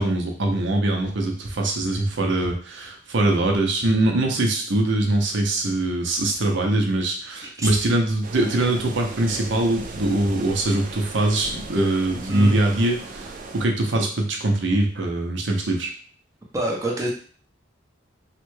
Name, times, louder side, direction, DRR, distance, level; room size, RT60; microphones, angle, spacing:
voice 1, 0.0-15.9, right 2 dB, 70° right, 2 dB, 0.7 m, -22 dB
sound 1, 8.2-13.7, right 3 dB, 45° right, 0.4 m, -38 dB
voice 2, 12.1-12.6 13.9-14.0 16.5-17.1, right 1 dB, 15° right, -2 dB, 0.7 m, -27 dB
3.2 x 2.1 x 3.1 m, 0.43 s
head